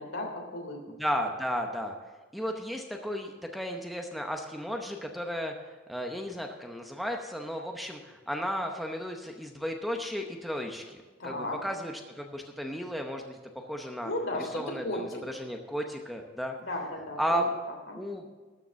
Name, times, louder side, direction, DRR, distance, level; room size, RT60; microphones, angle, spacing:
voice 1, 0.0-0.8 11.2-11.6 14.0-15.2 16.7-17.4 17.7-18.0, left 1 dB, 70° left, 2 dB, 3.0 m, -35 dB
voice 2, 1.0-1.9 2.3-5.5 5.9-14.1 14.4-16.6 17.2-17.4 17.9-18.3, equal, ahead, 3 dB, 0.8 m, -34 dB
13.0 x 6.8 x 7.4 m, 1.4 s
head